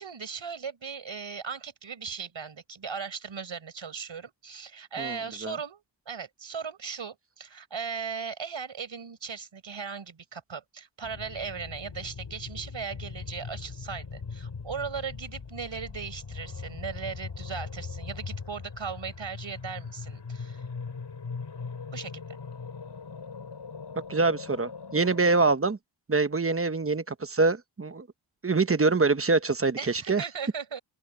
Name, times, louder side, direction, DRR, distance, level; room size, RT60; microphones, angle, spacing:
voice 1, 0.0-20.6 21.9-22.4 29.8-30.8, right 6 dB, 75° right, 5.7 m, -38 dB
voice 2, 5.0-5.5 24.1-25.8 26.1-28.1 28.4-30.2, right 3 dB, 30° right, 1.0 m, -25 dB
sound 1, 11.0-25.6, left 5 dB, 65° left, 6.8 m, -40 dB
open air
wide cardioid pair, 95°, 46 cm